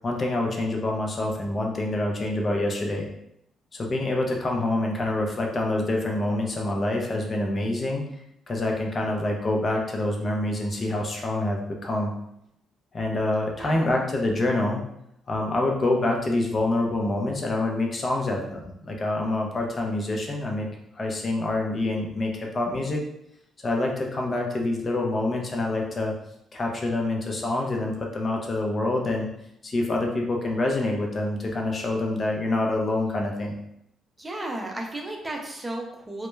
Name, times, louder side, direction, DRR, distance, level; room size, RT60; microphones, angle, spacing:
voice 1, 0.0-3.1 3.7-8.0 8.5-12.1 12.9-14.8 15.3-20.7 20.9-23.0 23.6-26.1 26.5-29.3 29.6-33.5, left 2 dB, 35° left, 0 dB, 0.5 m, -26 dB
voice 2, 13.6-14.0 34.2-36.3, right 1 dB, 15° right, 1 dB, 0.5 m, -34 dB
2.2 x 2.1 x 3.1 m, 0.80 s
cardioid pair, 90°, 0 cm